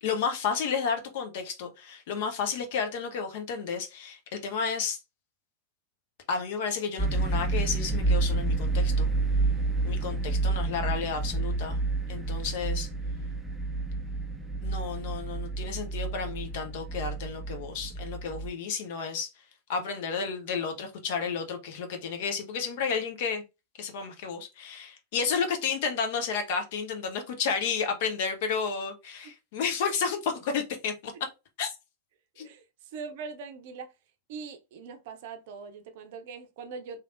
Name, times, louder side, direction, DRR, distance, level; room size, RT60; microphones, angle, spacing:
voice 1, 0.0-5.0 6.3-9.1 9.8-11.8 12.1-12.9 14.6-19.3 19.7-23.4 23.8-31.1 31.6-31.8 32.4-32.5, left 6 dB, 50° left, 0.8 m, -32 dB
sound 1, 7.0-18.5, right 3 dB, 10° right, 0.5 m, -29 dB
voice 2, 32.4-33.9 34.3-37.0, right 5 dB, 50° right, 0.6 m, -42 dB
3.3 x 2.9 x 2.4 m
figure-of-eight pair, 90°, 0 cm